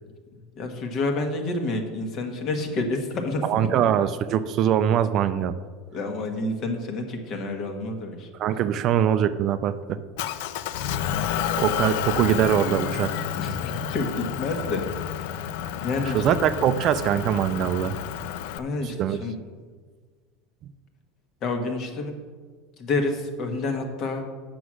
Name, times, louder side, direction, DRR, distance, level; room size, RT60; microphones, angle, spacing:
voice 1, 0.6-3.4 3.7-3.8 5.9-8.3 13.3-15.3 15.8-16.2 18.6-19.4 21.4-22.1 22.8-24.2, left 2 dB, 40° left, 5 dB, 1.3 m, -29 dB
voice 2, 3.4-5.5 8.4-10.0 11.6-13.1 16.1-17.9 19.0-19.2, right 9 dB, 40° right, 12 dB, 0.4 m, -22 dB
Motor vehicle (road) / Engine, 10.2-18.6, left 10 dB, 70° left, 0.4 m, -30 dB
8.1 x 6.1 x 6.2 m, 1.5 s
supercardioid pair, 145°, 0 cm